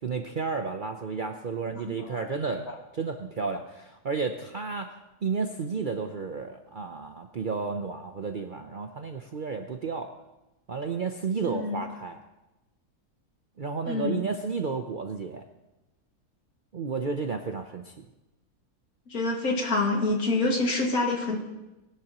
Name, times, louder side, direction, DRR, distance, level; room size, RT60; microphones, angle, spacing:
voice 1, 0.0-2.7 2.9-4.9 5.2-10.1 10.7-12.2 13.6-15.4 16.7-18.1, right 5 dB, 50° right, 5 dB, 0.6 m, -32 dB
voice 2, 1.9-2.3 2.6-2.8 11.4-11.8 13.9-14.2 19.1-21.4, left 2 dB, 70° left, 0 dB, 2.5 m, -27 dB
20.5 x 11.5 x 3.0 m, 1.0 s
omnidirectional pair, 1.6 m